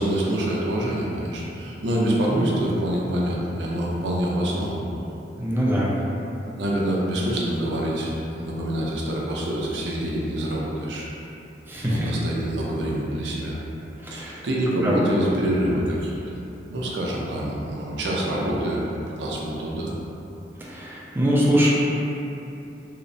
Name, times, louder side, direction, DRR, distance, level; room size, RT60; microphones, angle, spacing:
voice 1, 0.0-4.8 5.7-5.8 6.5-11.0 11.8-13.6 14.1-16.4 16.7-18.8 19.2-20.0, right 1 dB, 75° right, -3 dB, 0.5 m, -26 dB
voice 2, 5.4-5.9 11.7-12.0 14.0-14.4 14.8-15.0 20.7-21.7, equal, 10° right, -5 dB, 0.3 m, -22 dB
2.8 x 2.0 x 2.5 m, 2.8 s
head